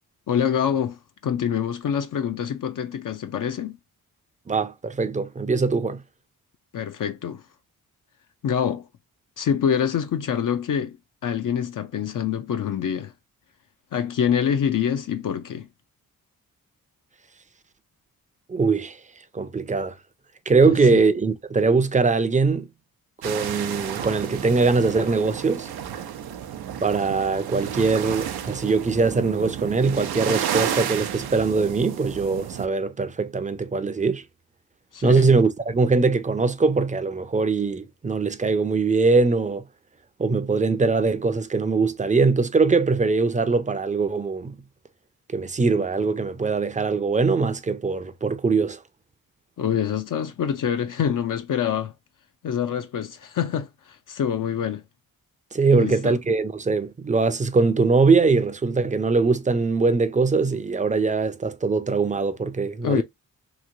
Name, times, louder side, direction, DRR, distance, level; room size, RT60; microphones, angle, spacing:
voice 1, 0.3-3.8 6.7-7.4 8.4-8.9 9.4-11.0 11.2-13.1 13.9-15.7 20.6-21.0 34.9-35.3 49.6-51.9 52.4-54.8 55.7-56.1 62.8-63.0, left 8 dB, 60° left, 0.5 m, -25 dB
voice 2, 4.5-6.0 18.5-19.0 19.3-20.0 20.5-22.7 23.2-25.7 26.8-34.2 35.0-39.6 40.2-44.6 45.3-48.8 55.5-63.0, right 4 dB, 20° right, 0.5 m, -22 dB
sound 1, 23.2-32.7, right 9 dB, 85° right, 0.6 m, -31 dB
3.0 x 2.8 x 2.6 m
cardioid pair, 70°, 37 cm